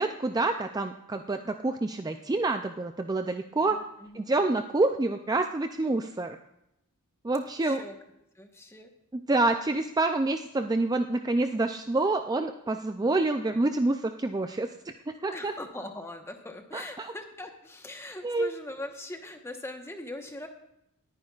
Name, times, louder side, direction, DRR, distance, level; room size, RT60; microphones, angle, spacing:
voice 1, 0.0-3.8 4.1-6.4 7.2-7.8 9.1-14.7 15.1-15.5 16.7-17.1 18.2-18.5, right 2 dB, 20° right, 7 dB, 0.4 m, -27 dB
voice 2, 3.6-4.3 7.6-7.9 8.3-8.9 15.3-20.5, left 1 dB, 10° left, 4 dB, 1.1 m, -41 dB
19.5 x 9.6 x 2.4 m, 0.83 s
head